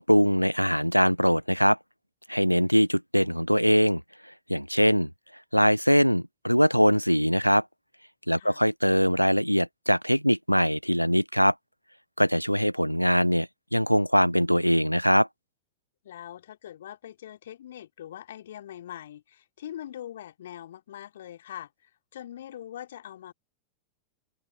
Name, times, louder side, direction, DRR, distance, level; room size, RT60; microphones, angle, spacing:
voice 1, 0.0-1.8 2.3-4.0 4.5-5.1 5.5-7.6 8.3-11.5 12.2-15.3, equal, 90° left, 0.5 m, -22 dB
voice 2, 16.0-21.7 22.1-23.3, left 11 dB, 60° left, 3.5 m, -42 dB
open air
figure-of-eight pair, 90°, 0 cm